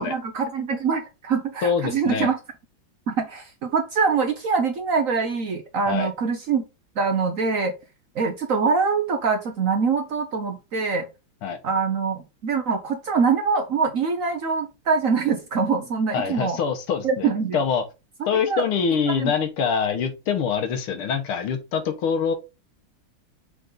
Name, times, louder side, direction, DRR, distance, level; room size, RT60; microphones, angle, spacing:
voice 1, 0.0-2.4 3.1-6.6 7.0-7.7 8.1-11.1 11.6-16.6 17.0-17.6 18.3-18.6 19.1-19.3, right 5 dB, 60° right, 0.8 m, -24 dB
voice 2, 1.6-2.3 5.9-6.1 11.4-11.6 16.1-17.8 18.3-22.3, left 6 dB, 85° left, 2.0 m, -24 dB
6.5 x 3.8 x 3.9 m
omnidirectional pair, 2.3 m